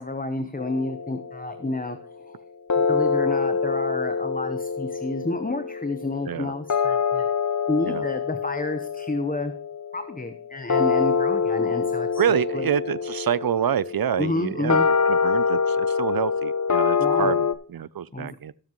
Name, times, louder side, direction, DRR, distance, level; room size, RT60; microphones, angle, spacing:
voice 1, 0.0-2.4 2.7-7.3 7.7-9.5 9.9-12.2 12.5-12.7 14.2-14.9 17.0-17.3 18.1-18.4, left 2 dB, 20° left, 0.9 m, -30 dB
sound 1, 0.6-1.9 2.7-17.5, left 5 dB, 45° left, 0.8 m, -25 dB
voice 2, 12.2-18.5, right 9 dB, 60° right, 0.5 m, -27 dB
18.0 x 7.3 x 3.1 m
wide cardioid pair, 65°, 41 cm